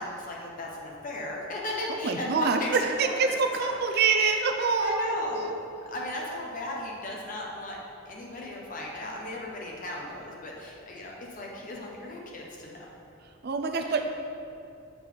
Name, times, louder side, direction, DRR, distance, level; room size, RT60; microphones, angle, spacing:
voice 1, 0.0-3.3 3.6-4.4 4.8-5.5 5.9-7.8 8.0-13.0 13.8-14.0, left 1 dB, 40° left, -2 dB, 1.1 m, -36 dB
voice 2, 2.0-5.5 13.4-14.0, right 4 dB, 50° right, 5 dB, 0.4 m, -26 dB
6.9 x 3.9 x 5.7 m, 2.5 s
head